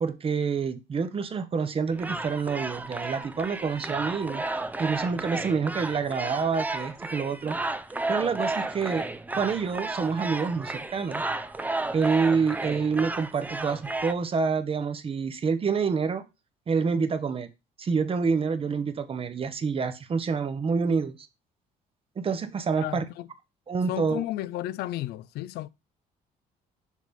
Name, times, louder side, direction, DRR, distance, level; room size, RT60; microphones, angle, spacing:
voice 1, 0.0-4.4 4.8-7.6 8.1-9.1 9.4-11.3 11.9-16.3 16.7-17.5 17.8-21.2 22.2-23.0 23.7-24.2, right 5 dB, 35° right, 0.9 m, -27 dB
sound 1, 1.9-14.1, right 2 dB, 10° right, 0.5 m, -33 dB
voice 2, 22.8-23.3 23.9-25.7, left 15 dB, 75° left, 0.4 m, -33 dB
6.4 x 3.4 x 5.1 m
cardioid pair, 110°, 17 cm